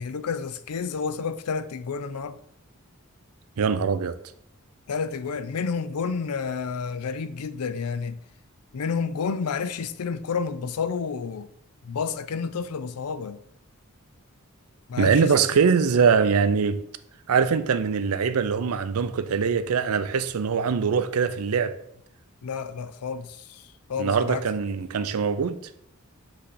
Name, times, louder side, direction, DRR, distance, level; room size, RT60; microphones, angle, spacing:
voice 1, 0.0-2.4 4.9-8.2 8.7-11.5 11.8-13.4 14.9-15.3 22.4-24.4, left 5 dB, 80° left, 0.5 m, -30 dB
voice 2, 3.6-4.1 15.0-16.8 17.3-21.7 24.0-25.6, right 6 dB, 75° right, 0.5 m, -22 dB
7.8 x 3.2 x 4.1 m
head